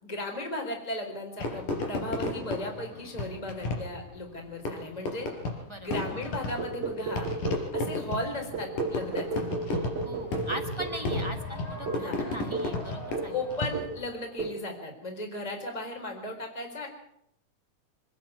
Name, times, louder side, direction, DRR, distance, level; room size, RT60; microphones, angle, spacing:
voice 1, 0.0-5.3 5.8-7.3 7.7-9.4 11.9-12.3 13.3-16.9, left 1 dB, 10° left, 3 dB, 3.9 m, -36 dB
Fireworks, 1.4-14.1, left 2 dB, 80° left, 5.4 m, -34 dB
voice 2, 5.7-6.0 10.0-13.4, equal, 10° right, 4 dB, 1.8 m, -40 dB
sound 1, 6.6-8.0 8.5-11.4 11.9-12.1 12.5-12.8 13.1-13.4 13.7-14.0 14.4-14.6, right 3 dB, 50° right, 2.5 m, -34 dB
26.0 x 10.5 x 9.7 m, 0.74 s
omnidirectional pair, 3.8 m